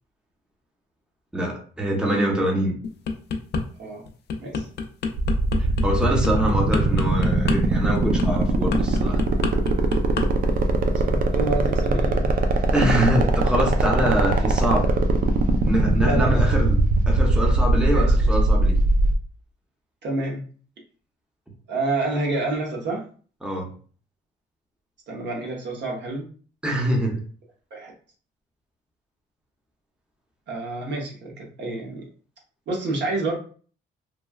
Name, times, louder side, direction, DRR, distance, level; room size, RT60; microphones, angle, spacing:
voice 1, 1.3-2.7 5.8-9.2 12.7-14.9 15.6-16.8 17.1-18.8 23.4-23.7 26.6-27.2, equal, 5° right, 0 dB, 0.7 m, -24 dB
sound 1, 2.8-3.6 4.1-10.3 10.5-10.8, left 4 dB, 55° left, 0.5 m, -28 dB
sound 2, 5.2-19.1, right 3 dB, 45° right, 0.4 m, -21 dB
voice 2, 9.4-9.8 10.5-10.6 10.9-12.3 14.1-14.2 16.0-16.6 17.9-18.1 20.0-20.4 21.7-23.1 25.1-26.3 27.7-27.9 30.5-32.1 32.7-33.4, right 2 dB, 60° right, -1 dB, 0.9 m, -29 dB
3.1 x 2.2 x 2.3 m, 0.42 s
cardioid pair, 90°, 20 cm